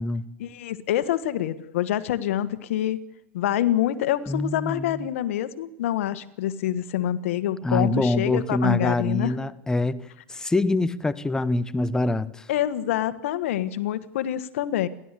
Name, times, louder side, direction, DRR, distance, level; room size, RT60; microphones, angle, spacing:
voice 1, 0.4-3.0 3.3-9.3 12.5-14.9, left 12 dB, 90° left, 1.5 m, -26 dB
voice 2, 4.3-5.1 7.6-12.5, left 2 dB, 10° left, 1.0 m, -25 dB
29.5 x 12.5 x 8.4 m
supercardioid pair, 120°, 7 cm